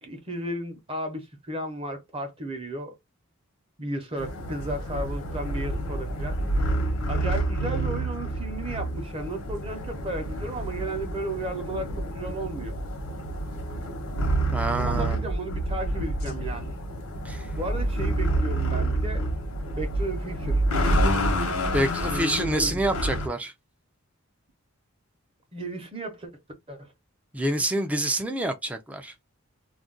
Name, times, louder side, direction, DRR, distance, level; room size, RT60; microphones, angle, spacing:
voice 1, 0.0-3.0 3.8-6.4 7.1-12.8 14.7-16.7 17.6-19.3 19.7-20.6 22.1-22.8 25.5-26.3 26.7-26.9, right 1 dB, 25° right, 0.7 m, -34 dB
sound 1, 4.2-23.3, right 1 dB, 80° left, 0.9 m, -28 dB
voice 2, 14.5-15.2 17.2-17.5 21.7-23.5 27.3-29.1, right 1 dB, 5° right, 0.3 m, -27 dB
2.4 x 2.2 x 3.7 m
head